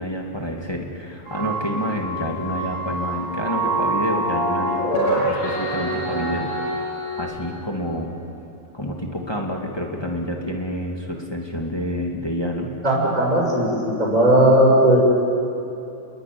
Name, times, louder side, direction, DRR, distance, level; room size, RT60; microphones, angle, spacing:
voice 1, 0.0-6.8 7.2-8.1 8.7-12.7, equal, 10° left, 0 dB, 2.1 m, -28 dB
sound 1, 1.3-7.3, right 1 dB, 60° left, 8.7 m, -25 dB
voice 2, 12.8-15.0, right 1 dB, 10° right, -4 dB, 6.6 m, -17 dB
29.5 x 21.5 x 9.5 m, 2.8 s
omnidirectional pair, 3.4 m